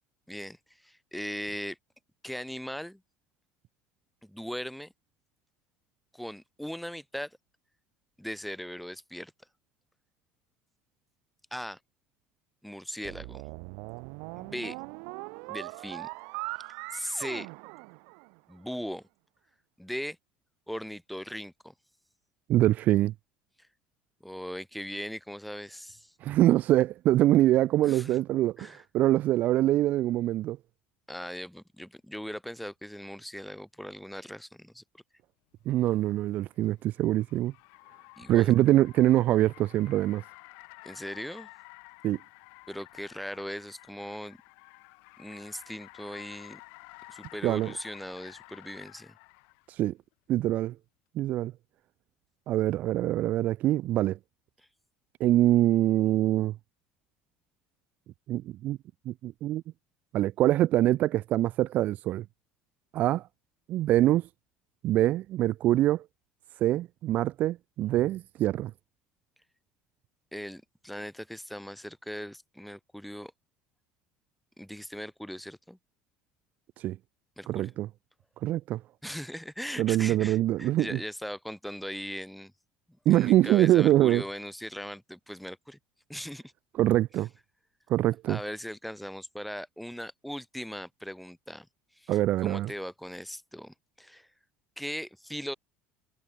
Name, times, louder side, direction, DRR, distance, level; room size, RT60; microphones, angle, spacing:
voice 1, 0.3-1.8 2.2-3.0 4.2-4.9 6.1-7.4 8.2-9.3 11.5-11.8 12.6-13.4 14.3-14.8 15.5-16.1 16.9-17.5 18.5-19.0 19.8-20.2 20.7-21.7 24.2-26.1 27.8-28.2 28.6-28.8 31.1-34.8 38.2-38.5 40.8-41.5 42.7-44.4 45.2-46.6 47.1-49.1 54.6-54.7 70.3-73.3 74.6-75.8 77.4-77.7 79.0-82.5 83.1-85.8 86.1-86.4 88.3-91.7 91.9-94.3 94.8-95.6, equal, ahead, 1.7 m, -39 dB
sound 1, 13.0-18.5, right 38 dB, 80° right, 1.7 m, -40 dB
voice 2, 22.5-23.1 26.2-30.6 35.7-37.5 38.3-40.2 42.0-42.2 47.4-47.7 49.7-49.9 50.3-50.7 51.2-51.5 52.5-54.2 55.2-56.5 58.3-58.8 59.1-59.6 60.1-62.2 62.9-63.3 63.7-64.3 64.8-66.0 66.6-68.7 76.8-77.0 77.5-77.9 78.4-78.8 79.8-81.0 83.1-84.2 86.8-87.3 87.9-88.4 92.1-92.7, right 14 dB, 50° right, 0.4 m, -24 dB
Car, 35.7-49.7, left 38 dB, 80° left, 4.5 m, -52 dB
cardioid pair, 140°, 4 cm